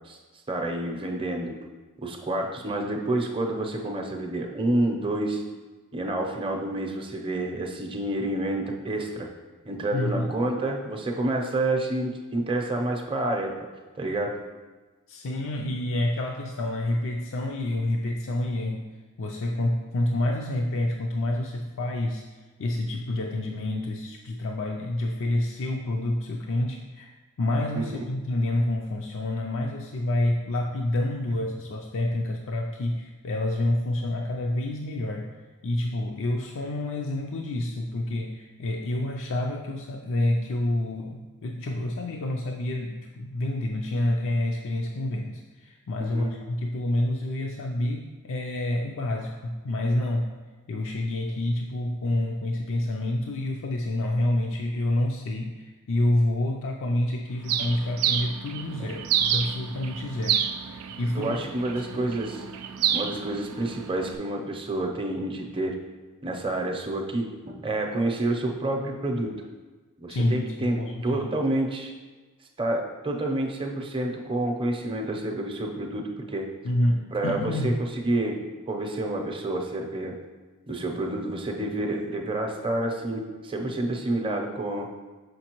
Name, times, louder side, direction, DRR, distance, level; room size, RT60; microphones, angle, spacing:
voice 1, 0.5-1.6 2.0-5.4 5.9-9.3 9.6-13.5 14.0-14.4 27.7-28.0 46.1-46.3 61.1-62.5 62.9-65.8 66.2-69.3 70.0-70.8 71.0-71.9 72.6-76.5 77.1-78.4 78.7-80.1 80.7-84.9, right 1 dB, 25° right, 1 dB, 0.6 m, -28 dB
voice 2, 9.9-10.3 15.1-18.9 19.2-22.2 22.6-27.1 27.4-35.3 35.6-50.3 50.7-60.4 61.0-61.4 61.8-62.0 70.1-71.3 76.6-77.8, left 1 dB, 60° left, 0 dB, 0.4 m, -28 dB
Bird, 57.5-64.1, right 9 dB, 90° right, 0.4 m, -29 dB
6.3 x 5.2 x 3.0 m, 1.3 s
head